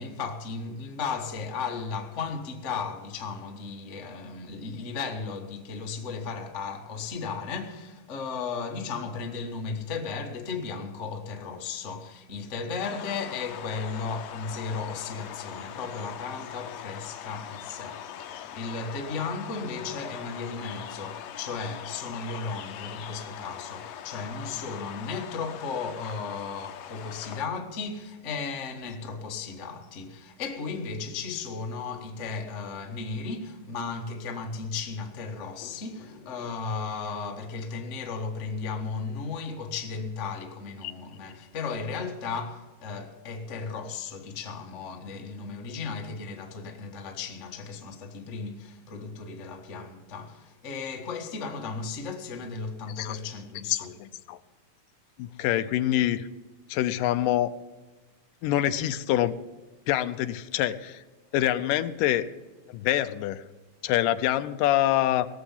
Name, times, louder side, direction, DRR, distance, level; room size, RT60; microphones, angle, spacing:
voice 1, 0.0-54.0, left 4 dB, 55° left, 0.8 m, -35 dB
sound 1, 12.8-27.4, left 10 dB, 70° left, 1.7 m, -41 dB
voice 2, 55.2-56.3 56.7-57.5 58.4-59.3 59.9-61.0 61.3-62.3 62.7-63.4 63.8-65.3, left 13 dB, 85° left, 2.3 m, -25 dB
19.0 x 7.3 x 7.3 m
omnidirectional pair, 3.7 m